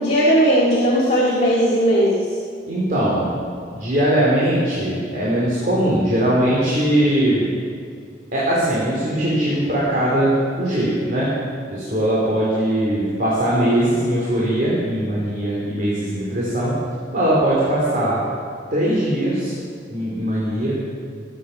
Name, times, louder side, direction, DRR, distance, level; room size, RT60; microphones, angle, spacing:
voice 1, 0.0-2.2, equal, 40° left, -6 dB, 2.0 m, -17 dB
voice 2, 2.7-3.3 3.7-7.5 8.3-11.3 11.7-16.7 17.1-18.2 18.7-19.5 19.9-20.8, right 1 dB, 45° right, -7 dB, 2.9 m, -20 dB
18.5 x 8.4 x 5.7 m, 2.2 s
head